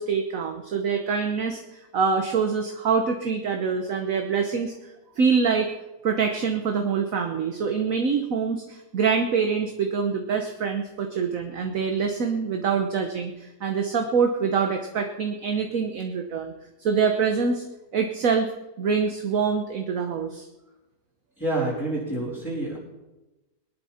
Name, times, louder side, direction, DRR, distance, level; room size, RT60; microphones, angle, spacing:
voice 1, 0.0-4.7 5.2-5.7 6.0-16.5 16.8-17.6 17.9-18.5 18.8-20.4, right 5 dB, 55° right, 4 dB, 1.4 m, -25 dB
voice 2, 21.4-22.8, right 2 dB, 5° left, -10 dB, 4.1 m, -28 dB
22.0 x 11.0 x 4.3 m, 1.0 s
omnidirectional pair, 1.8 m